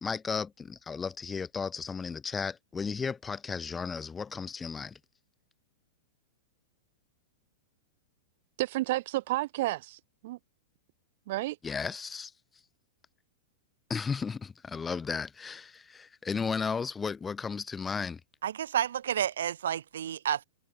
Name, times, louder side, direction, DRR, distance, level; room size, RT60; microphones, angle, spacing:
voice 1, 0.0-5.0 11.6-12.3 13.9-18.2, left 5 dB, 15° left, 0.8 m, -34 dB
voice 2, 8.6-10.4 11.3-11.6, right 18 dB, 55° right, 2.2 m, -31 dB
voice 3, 18.4-20.4, right 10 dB, 85° right, 2.4 m, -30 dB
hypercardioid pair, 145°, 0 cm